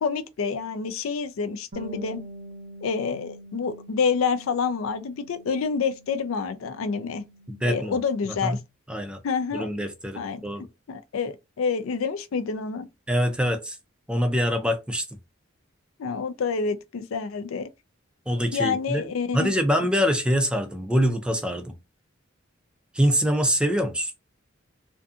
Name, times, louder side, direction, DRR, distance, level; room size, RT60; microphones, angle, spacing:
voice 1, 0.0-2.2 2.8-7.2 7.6-8.6 9.2-9.7 10.1-10.4 10.9-12.9 16.0-17.7 18.5-19.5, left 5 dB, 90° left, 0.4 m, -28 dB
Bass guitar, 1.7-8.0, right 1 dB, 80° right, 0.7 m, -45 dB
voice 2, 7.5-8.0 8.4-8.6 8.9-9.2 9.5-10.6 13.1-13.8 14.1-15.1 18.3-19.0 19.3-21.8 22.9-24.1, equal, 5° right, 0.4 m, -24 dB
2.5 x 2.5 x 2.3 m
head